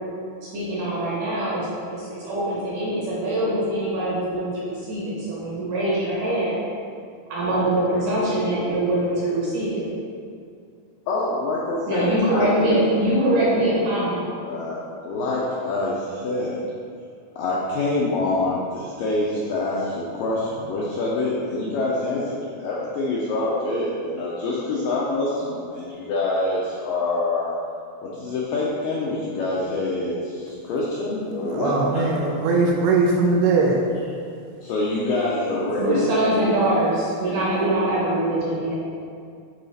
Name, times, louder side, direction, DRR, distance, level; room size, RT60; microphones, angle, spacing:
voice 1, 0.5-6.6 7.3-9.9 11.9-14.4 35.8-38.7, right 1 dB, 65° right, -7 dB, 2.2 m, -23 dB
voice 2, 11.1-12.5 14.4-16.6 17.4-27.6 28.0-31.8 34.6-36.0, left 2 dB, 85° left, -6 dB, 2.0 m, -26 dB
voice 3, 31.5-33.8, right 3 dB, 85° right, -1 dB, 2.6 m, -20 dB
9.6 x 3.9 x 4.2 m, 2.3 s
omnidirectional pair, 4.9 m